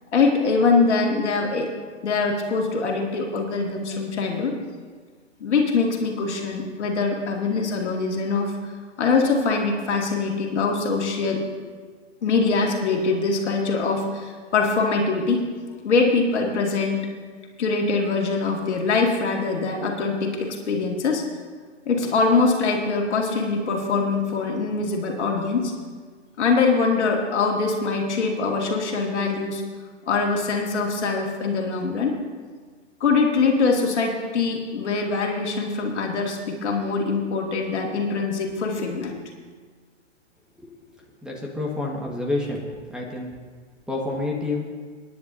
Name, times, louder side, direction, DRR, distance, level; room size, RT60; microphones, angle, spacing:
voice 1, 0.1-1.7 2.0-4.6 5.4-8.6 9.0-11.4 12.2-15.4 15.8-17.1 17.6-21.2 21.9-25.7 26.4-29.6 30.1-32.2 33.0-39.2, left 4 dB, 65° left, 1 dB, 2.3 m, -23 dB
voice 2, 41.2-42.6 42.9-43.3 43.9-44.7, left 2 dB, ahead, -2 dB, 1.6 m, -28 dB
26.0 x 10.0 x 2.7 m, 1.5 s
hypercardioid pair, 120°, 36 cm